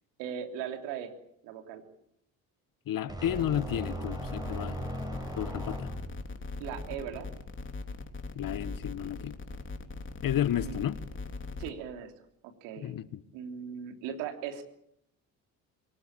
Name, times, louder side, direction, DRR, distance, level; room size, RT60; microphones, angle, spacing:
voice 1, 0.2-1.1 1.4-1.8 6.6-7.3 10.5-10.8 11.6-12.1 12.4-12.9 13.3-14.6, right 8 dB, 75° right, 3.3 m, -38 dB
voice 2, 2.9-4.8 5.4-5.9 8.3-9.3 10.2-11.0 12.8-13.2, left 11 dB, 50° left, 1.3 m, -32 dB
sound 1, 3.1-6.3, right 1 dB, 10° right, 7.2 m, -38 dB
sound 2, 3.3-11.7, left 3 dB, 30° left, 3.4 m, -40 dB
22.5 x 19.5 x 8.7 m
hypercardioid pair, 55°, 42 cm